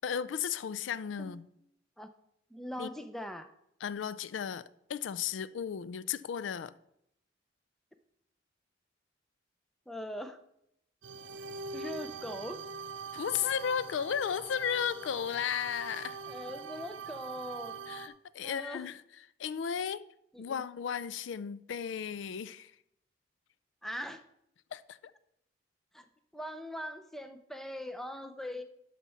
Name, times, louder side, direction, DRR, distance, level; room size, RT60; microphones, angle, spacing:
voice 1, 0.0-1.5 2.8-2.9 3.8-6.7 13.1-16.2 17.9-19.0 19.4-20.1 20.4-22.7 24.7-25.1, left 8 dB, 85° left, 0.4 m, -34 dB
voice 2, 2.5-3.5 9.9-10.4 11.7-12.6 16.3-17.8 18.4-18.8 20.3-20.6 23.8-24.2 25.9-26.1 26.3-28.6, equal, ahead, 0.5 m, -41 dB
sound 1, 11.0-18.1, right 4 dB, 85° right, 0.6 m, -43 dB
12.0 x 4.2 x 5.6 m
head